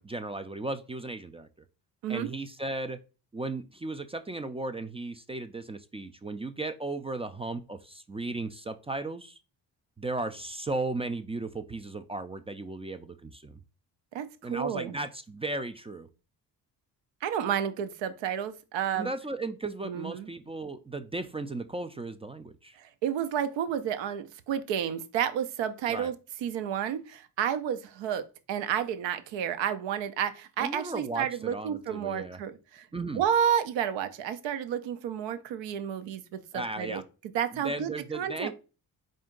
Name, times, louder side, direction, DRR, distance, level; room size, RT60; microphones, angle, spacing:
voice 1, 0.0-1.5 2.1-3.0 3.3-9.4 10.0-13.6 14.4-16.1 18.9-22.8 25.9-26.1 30.6-32.4 32.9-33.2 36.5-37.0 37.5-38.5, right 2 dB, 15° right, 0.3 m, -35 dB
voice 2, 14.1-15.0 17.2-19.1 19.8-20.3 22.8-26.1 26.4-32.9 33.1-37.0 37.3-38.5, right 9 dB, 70° right, 0.7 m, -31 dB
4.3 x 2.6 x 3.7 m
hypercardioid pair, 50°, 46 cm